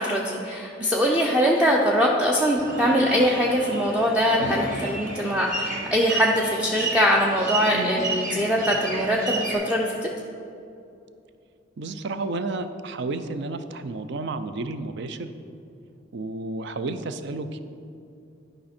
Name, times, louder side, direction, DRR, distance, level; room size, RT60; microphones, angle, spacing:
voice 1, 0.0-10.1, equal, 5° right, -2 dB, 0.5 m, -22 dB
sound 1, 2.5-9.5, right 2 dB, 45° right, 1.5 m, -31 dB
voice 2, 11.8-15.3 16.1-17.6, right 3 dB, 65° right, 10 dB, 0.5 m, -31 dB
11.0 x 5.1 x 4.3 m, 2.6 s
head